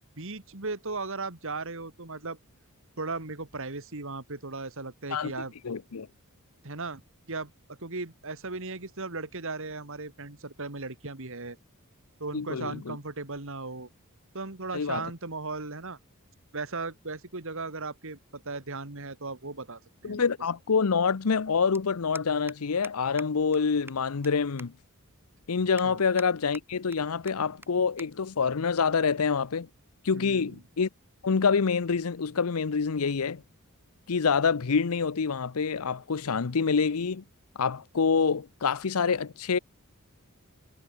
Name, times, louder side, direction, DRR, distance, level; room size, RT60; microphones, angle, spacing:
voice 1, 0.2-2.4 3.0-5.5 6.6-7.0 7.3-11.6 12.2-13.9 14.3-16.0 16.5-20.2 25.8-26.0 30.1-30.6, right 3 dB, 65° right, 2.4 m, -37 dB
voice 2, 5.6-6.1 12.3-13.0 14.7-15.1 20.0-24.7 25.5-29.7 30.0-30.9 31.2-33.4 34.1-37.2 37.6-39.6, left 5 dB, 80° left, 0.7 m, -26 dB
sound 1, 21.7-21.8 22.2-22.6 22.8-22.9 23.2-23.3 23.5-23.6 23.9-24.3 24.6-24.7 25.2-25.3 25.8-26.3 26.5-27.0 27.3-27.4 27.6-27.7 28.0-28.1 28.4-28.6 29.4-29.7, right 2 dB, 10° right, 6.6 m, -45 dB
head